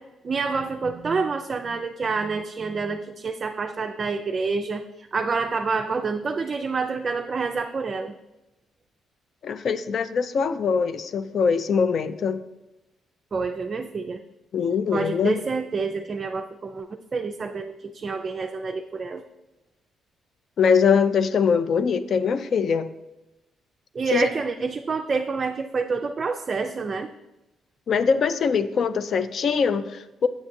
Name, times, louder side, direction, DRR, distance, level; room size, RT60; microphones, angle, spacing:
voice 1, 0.2-8.1 13.3-14.2 14.9-19.2 23.9-27.1, right 4 dB, 40° right, 5 dB, 0.3 m, -28 dB
voice 2, 9.4-12.4 14.5-15.4 20.6-22.9 24.1-24.3 27.9-30.3, left 6 dB, 55° left, 13 dB, 0.4 m, -22 dB
7.2 x 7.1 x 2.6 m, 0.98 s
cardioid pair, 90°, 0 cm